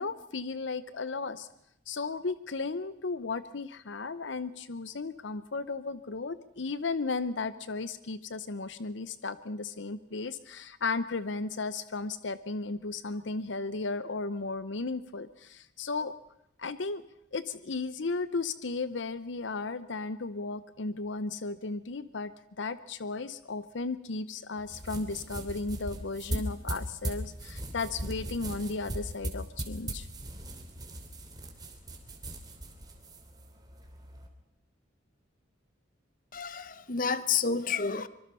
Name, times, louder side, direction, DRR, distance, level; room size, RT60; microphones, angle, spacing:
voice 1, 0.0-1.5 1.9-16.1 16.6-17.0 17.3-22.3 22.6-30.1, left 3 dB, 70° left, 14 dB, 0.7 m, -35 dB
sound 1, 24.6-34.3, right 1 dB, 20° right, 3.0 m, -39 dB
voice 2, 36.3-38.1, left 5 dB, 45° left, 14 dB, 0.9 m, -30 dB
25.0 x 23.5 x 5.6 m, 0.79 s
head